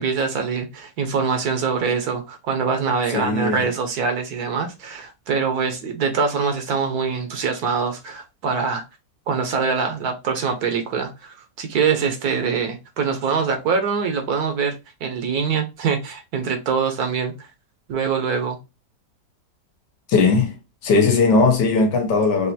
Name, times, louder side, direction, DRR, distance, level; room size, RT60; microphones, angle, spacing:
voice 1, 0.0-8.8 9.3-17.5 17.9-18.6, right 5 dB, 65° right, 1.3 m, -24 dB
voice 2, 3.1-3.7 20.1-20.6 20.8-22.5, left 4 dB, 70° left, 1.7 m, -18 dB
5.5 x 2.5 x 2.7 m
omnidirectional pair, 1.9 m